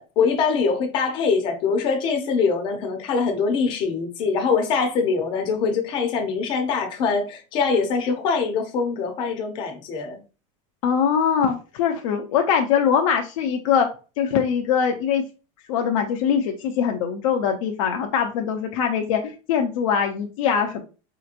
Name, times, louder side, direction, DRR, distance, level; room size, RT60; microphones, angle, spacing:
voice 1, 0.0-10.2, left 5 dB, 30° left, 0.6 m, -23 dB
voice 2, 10.8-13.9 14.2-15.2 15.7-20.8, left 7 dB, 80° left, 0.6 m, -22 dB
4.2 x 2.9 x 2.4 m
supercardioid pair, 175°, 17 cm